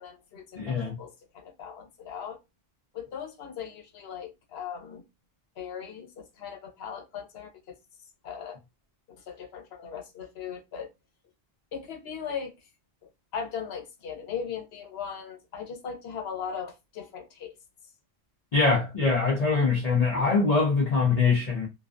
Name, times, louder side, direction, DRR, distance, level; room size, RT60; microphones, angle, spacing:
voice 1, 0.0-2.4 2.9-5.0 5.6-7.7 8.2-8.6 9.1-10.9 11.7-12.5 13.3-17.6, left 7 dB, 85° left, 0.9 m, -38 dB
voice 2, 0.6-0.9 18.5-21.7, left 4 dB, 45° left, 0.6 m, -23 dB
2.4 x 2.2 x 2.4 m
omnidirectional pair, 1.0 m